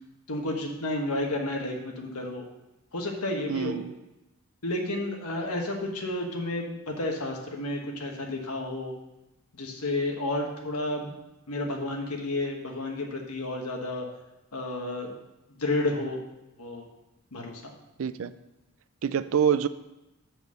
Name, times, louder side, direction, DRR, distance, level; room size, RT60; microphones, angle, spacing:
voice 1, 0.3-2.5 2.9-3.8 4.6-8.9 9.6-11.1 11.5-14.0 14.5-15.1 15.6-16.2 16.6-16.8 17.3-17.7, left 2 dB, 90° left, 2 dB, 1.3 m, -31 dB
voice 2, 3.5-3.9 18.0-18.3 19.0-19.7, right 8 dB, 65° right, 14 dB, 0.4 m, -26 dB
6.1 x 5.3 x 6.7 m, 0.97 s
head